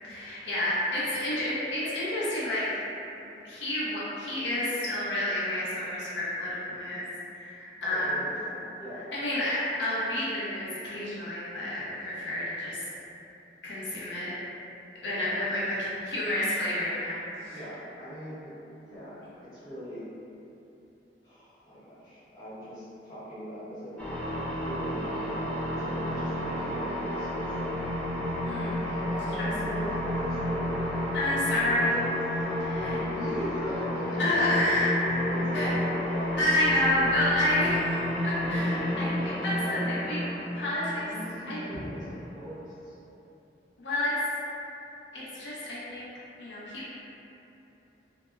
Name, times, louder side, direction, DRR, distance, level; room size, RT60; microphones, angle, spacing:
voice 1, 0.0-2.7 3.2-7.0 7.3-8.1 9.1-12.8 13.6-14.3 15.0-15.8 16.0-17.6 28.5-28.8 29.4-29.5 31.1-32.1 32.6-33.0 34.2-34.9 35.5-35.7 36.4-40.3 40.6-41.1 41.5-41.8 43.8-44.2 45.1-46.1 46.4-46.9, left 1 dB, 90° left, -9 dB, 0.6 m, -29 dB
voice 2, 7.8-9.1 17.5-18.5 18.9-20.0 21.2-24.2 24.6-27.8 28.8-30.8 32.8-34.9 35.3-36.4 39.3-39.9 41.0-42.9, equal, 25° left, -14 dB, 0.9 m, -40 dB
sound 1, 24.0-42.3, left 1 dB, 10° left, 0.3 m, -31 dB
2.2 x 2.1 x 3.0 m, 2.9 s
head